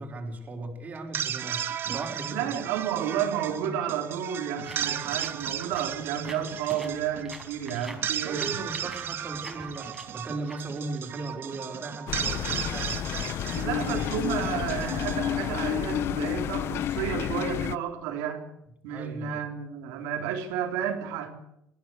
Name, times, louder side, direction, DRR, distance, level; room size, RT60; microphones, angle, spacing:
voice 1, 0.0-2.5 8.2-13.0 18.9-19.4, right 3 dB, 30° right, 2 dB, 5.0 m, -37 dB
sound 1, 1.0-16.2, right 9 dB, 45° right, 1.7 m, -35 dB
voice 2, 2.3-8.6 13.5-18.4 18.8-21.3, right 9 dB, 85° right, 1 dB, 3.5 m, -31 dB
sound 2, 4.6-11.6, right 1 dB, 5° right, 5.2 m, -46 dB
sound 3, 12.1-17.8, left 11 dB, 55° left, 0.7 m, -30 dB
21.0 x 16.0 x 8.2 m, 0.82 s
cardioid pair, 115°, 5 cm